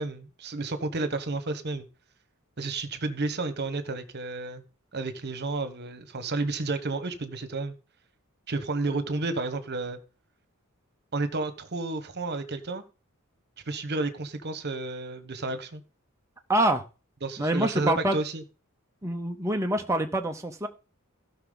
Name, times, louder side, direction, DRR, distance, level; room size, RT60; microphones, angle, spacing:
voice 1, 0.0-1.8 2.6-4.6 4.9-7.7 8.5-10.0 11.1-12.8 13.7-15.8 17.2-18.4, right 3 dB, 50° right, 1.2 m, -31 dB
voice 2, 16.5-16.8 17.4-18.2 19.0-20.7, right 1 dB, 15° right, 0.8 m, -26 dB
16.0 x 5.8 x 4.0 m
head